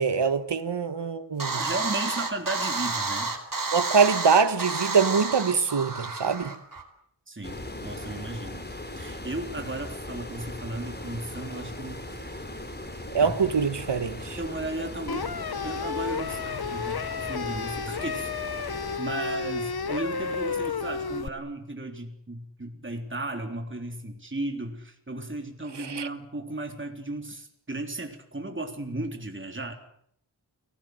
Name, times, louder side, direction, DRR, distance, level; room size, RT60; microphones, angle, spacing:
voice 1, 0.0-1.6 3.7-6.5 13.1-14.4 25.8-26.1, right 5 dB, 80° right, 1.7 m, -24 dB
sound 1, 1.4-6.8, right 3 dB, 50° right, 4.3 m, -30 dB
voice 2, 1.5-3.3 7.3-8.6 9.0-12.1 13.2-13.4 14.4-15.3 15.6-18.3 19.0-29.7, right 2 dB, 30° right, 3.7 m, -35 dB
sound 2, 7.4-19.0, left 1 dB, 25° left, 4.0 m, -39 dB
sound 3, 15.1-21.3, left 5 dB, 65° left, 1.4 m, -32 dB
29.5 x 20.5 x 8.0 m
wide cardioid pair, 75°, 41 cm